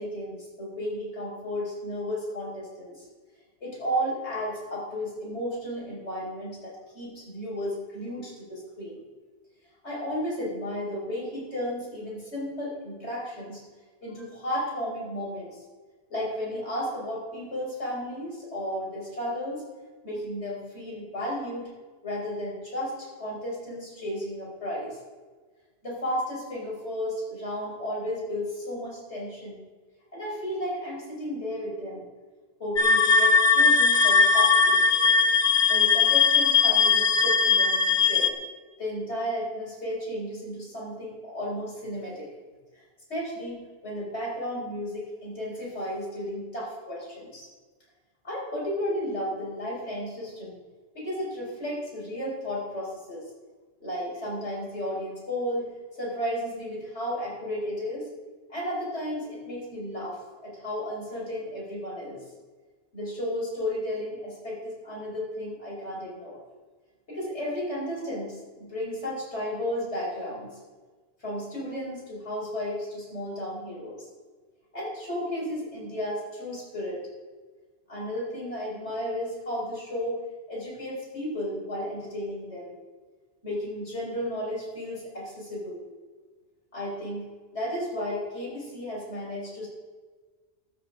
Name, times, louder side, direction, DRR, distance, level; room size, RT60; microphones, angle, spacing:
voice 1, 0.0-3.0 3.6-9.0 9.8-13.6 14.0-15.6 16.1-19.6 20.0-21.7 22.0-25.0 25.8-29.6 30.1-32.1 32.6-34.8 35.7-38.3 38.8-42.3 42.7-42.8 43.1-47.5 48.2-50.6 51.0-53.2 53.8-58.1 58.5-62.2 62.9-66.4 67.1-70.5 71.2-74.1 74.7-77.0 77.9-80.2 80.5-82.7 83.4-85.8 86.7-89.7, equal, 80° left, -5 dB, 5.2 m, -33 dB
sound 1, 32.8-38.3, left 5 dB, 50° left, 1.1 m, -20 dB
14.5 x 12.5 x 3.7 m, 1.4 s
omnidirectional pair, 1.1 m